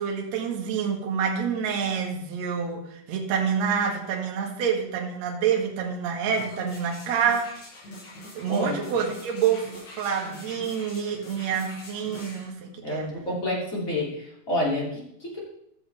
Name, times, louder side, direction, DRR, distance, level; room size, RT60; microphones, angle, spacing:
voice 1, 0.0-7.5 8.3-13.1, right 7 dB, 55° right, 0 dB, 2.1 m, -27 dB
sound 1, 6.2-12.5 13.0-13.1, left 1 dB, 80° left, 6.7 m, -44 dB
voice 2, 8.5-8.9 12.8-15.4, left 1 dB, 25° left, -5 dB, 2.5 m, -29 dB
15.0 x 6.9 x 3.5 m, 0.72 s
omnidirectional pair, 4.8 m